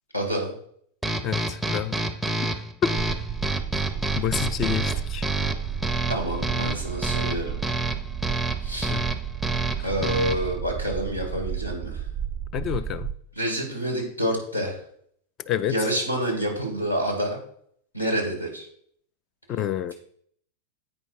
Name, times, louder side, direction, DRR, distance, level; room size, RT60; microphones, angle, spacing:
voice 1, 0.1-0.5 6.1-7.6 8.6-8.9 9.8-12.0 13.3-14.8 15.7-17.4 17.9-18.6, equal, 90° left, 2.4 m, -28 dB
sound 1, 1.0-10.6, right 2 dB, ahead, 0.7 m, -29 dB
voice 2, 1.2-2.0 2.8-2.9 4.2-5.2 8.9-9.0 12.5-13.1 15.5-15.8 19.5-19.9, left 10 dB, 30° left, 0.5 m, -28 dB
sound 2, 2.9-13.1, right 9 dB, 25° right, 0.4 m, -33 dB
8.6 x 5.4 x 4.7 m
figure-of-eight pair, 90°, 0 cm